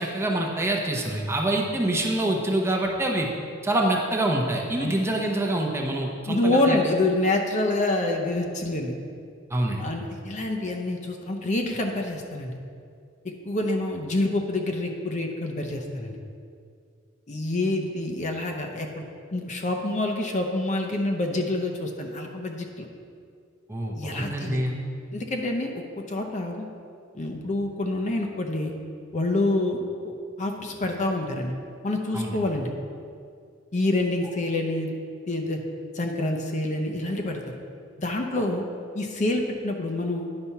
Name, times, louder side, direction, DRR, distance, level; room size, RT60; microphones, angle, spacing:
voice 1, 0.0-3.3 3.6-6.8 9.5-9.8 23.7-24.8 32.1-32.3, right 1 dB, 15° right, -1 dB, 0.8 m, -26 dB
voice 2, 6.3-8.9 9.8-12.5 13.4-16.1 17.3-18.9 19.3-22.9 24.0-24.6 25.1-26.7 27.1-28.7 29.1-31.5 31.8-32.7 33.7-35.0 35.3-35.6 35.9-37.6 38.0-38.6 38.9-40.3, left 2 dB, 35° left, 2 dB, 0.7 m, -27 dB
9.8 x 4.2 x 5.7 m, 2.3 s
head